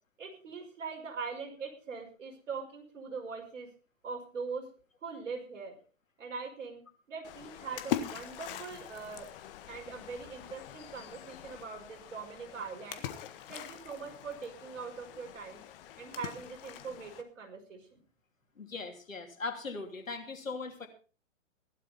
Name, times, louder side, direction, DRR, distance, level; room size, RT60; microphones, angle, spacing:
voice 1, 0.2-3.7 4.0-4.7 5.0-5.7 6.2-6.8 7.1-9.3 9.7-13.0 13.5-15.6 16.0-18.0, right 5 dB, 70° right, 2 dB, 5.3 m, -42 dB
Splash splatter, 7.2-17.2, left 11 dB, 45° left, 1.7 m, -42 dB
voice 2, 18.6-20.9, left 4 dB, 85° left, 5 dB, 3.1 m, -39 dB
16.0 x 12.0 x 4.3 m, 0.37 s
figure-of-eight pair, 120°, 39 cm